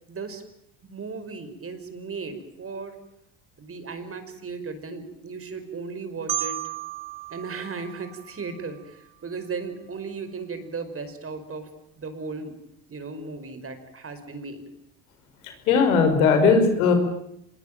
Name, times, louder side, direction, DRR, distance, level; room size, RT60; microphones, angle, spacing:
voice 1, 0.1-0.4 0.8-3.0 3.6-6.6 7.3-11.7 12.0-12.6 12.9-14.6, right 4 dB, 35° right, 9 dB, 5.5 m, -36 dB
Marimba xylophone, 6.3-9.1, right 14 dB, 60° right, 2.8 m, -34 dB
voice 2, 15.4-16.9, left 5 dB, 85° left, 7 dB, 5.4 m, -19 dB
25.5 x 21.0 x 9.1 m, 0.76 s
hypercardioid pair, 75°, 41 cm